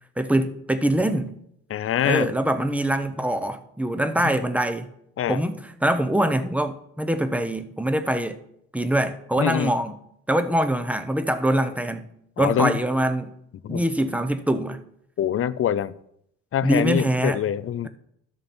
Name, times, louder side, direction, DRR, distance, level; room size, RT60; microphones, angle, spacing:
voice 1, 0.2-1.3 2.0-4.9 5.3-8.4 8.7-9.9 10.3-12.1 12.4-13.3 13.7-14.8 16.6-17.4, right 1 dB, 5° right, 0.9 m, -24 dB
voice 2, 1.7-2.3 4.2-4.3 5.2-5.4 9.4-9.8 12.4-12.8 13.6-13.8 15.2-15.9 16.5-17.9, left 10 dB, 45° left, 0.5 m, -24 dB
12.5 x 6.5 x 4.4 m
cardioid pair, 90°, 30 cm